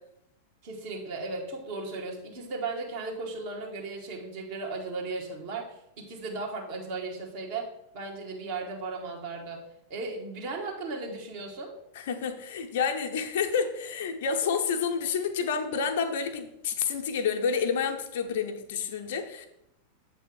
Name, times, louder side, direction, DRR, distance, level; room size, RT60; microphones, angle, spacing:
voice 1, 0.6-5.7 6.0-7.7 7.9-9.6 9.9-11.7 14.5-14.6, right 3 dB, 50° right, -1 dB, 1.6 m, -36 dB
voice 2, 11.9-19.5, left 6 dB, 55° left, 5 dB, 0.7 m, -29 dB
7.5 x 3.4 x 5.9 m, 0.82 s
figure-of-eight pair, 90°, 0 cm